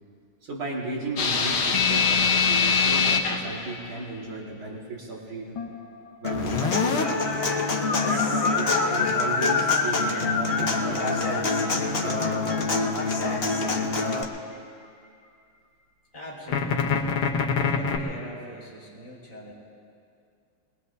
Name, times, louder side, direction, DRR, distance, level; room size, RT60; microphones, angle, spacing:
voice 1, 0.4-5.6 6.2-7.3 8.0-12.5, right 3 dB, 75° right, -4 dB, 3.0 m, -35 dB
sound 1, 1.2-3.9 5.6-5.9 6.3-7.0 7.6-13.3 16.5-18.0, left 5 dB, 85° left, 2.0 m, -25 dB
Human voice / Acoustic guitar, 6.2-14.2, left 3 dB, 35° left, 1.1 m, -26 dB
voice 2, 16.1-17.2 17.6-19.5, equal, 15° left, -7 dB, 4.1 m, -41 dB
24.0 x 21.5 x 2.7 m, 2.3 s
omnidirectional pair, 2.3 m